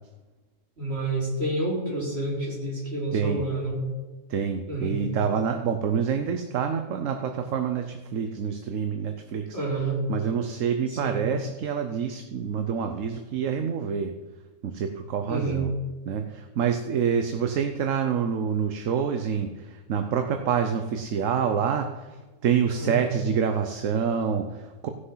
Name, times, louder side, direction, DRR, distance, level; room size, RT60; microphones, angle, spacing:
voice 1, 0.8-3.8 4.7-5.1 9.5-10.0 10.9-11.2 15.3-15.7 22.8-23.1, right 2 dB, 40° right, -6 dB, 4.6 m, -29 dB
voice 2, 4.3-9.6 10.1-14.1 14.6-15.7 16.1-22.1 22.4-24.9, right 7 dB, 60° right, 6 dB, 1.1 m, -27 dB
16.5 x 6.6 x 5.7 m, 1.2 s
omnidirectional pair, 1.6 m